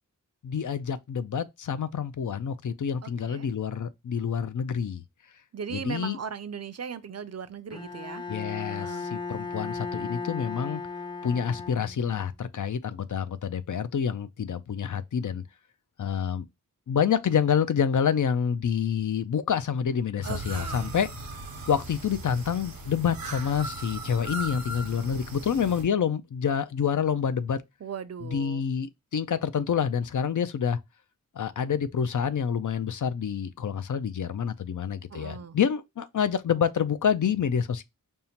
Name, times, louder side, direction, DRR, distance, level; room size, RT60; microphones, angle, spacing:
voice 1, 0.4-5.0 5.7-6.2 8.3-10.8 11.2-15.4 16.0-16.4 16.9-21.1 21.7-27.6 28.3-30.8 31.4-37.8, left 7 dB, 65° left, 0.5 m, -27 dB
voice 2, 3.0-3.5 5.5-8.3 8.7-9.1 20.2-21.0 27.8-28.6 35.1-35.6, right 7 dB, 50° right, 0.5 m, -38 dB
Bowed string instrument, 7.7-12.2, left 4 dB, 15° left, 0.5 m, -36 dB
sound 1, 20.2-25.8, right 2 dB, 85° right, 0.9 m, -38 dB
5.3 x 2.1 x 2.8 m
wide cardioid pair, 50°, 34 cm